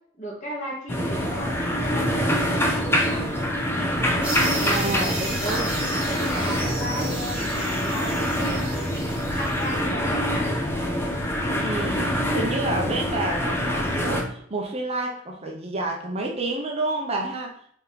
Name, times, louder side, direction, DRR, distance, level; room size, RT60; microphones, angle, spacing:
voice 1, 0.2-2.2 2.6-3.5 4.1-5.7 6.1-8.8 9.2-10.6, right 1 dB, 35° left, -3 dB, 2.2 m, -35 dB
sound 1, 0.9-14.2, equal, 10° left, 0.9 m, -25 dB
sound 2, 4.2-9.8, right 2 dB, 5° right, 1.6 m, -34 dB
voice 2, 4.6-5.8 11.6-17.7, right 2 dB, 30° right, 0 dB, 1.0 m, -29 dB
4.6 x 4.3 x 5.2 m, 0.63 s
head